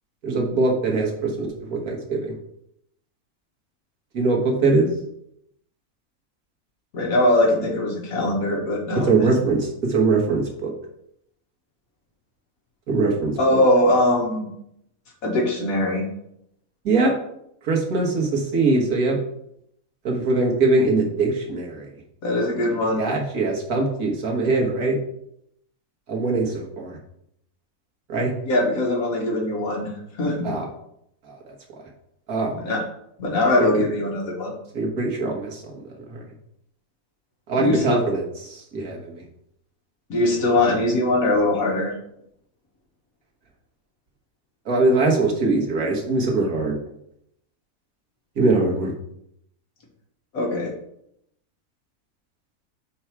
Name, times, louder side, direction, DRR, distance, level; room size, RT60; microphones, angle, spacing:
voice 1, 0.2-2.4 4.1-4.9 9.0-10.7 12.9-13.6 16.9-17.1 17.6-19.2 20.0-21.9 23.0-25.0 26.1-27.0 28.1-28.3 30.4-30.7 31.2-31.4 32.3-32.6 33.6-33.7 34.7-35.8 36.1-36.2 37.5-39.2 44.7-46.8 48.4-48.9, right 3 dB, 80° right, -1 dB, 1.8 m, -22 dB
voice 2, 6.9-9.3 13.4-14.5 15.2-16.1 22.2-23.1 28.4-30.4 32.5-32.8 33.2-34.5 37.5-38.0 40.1-41.9 50.3-50.7, left 1 dB, 70° left, 0 dB, 1.8 m, -21 dB
4.6 x 4.6 x 5.7 m, 0.75 s
omnidirectional pair, 1.5 m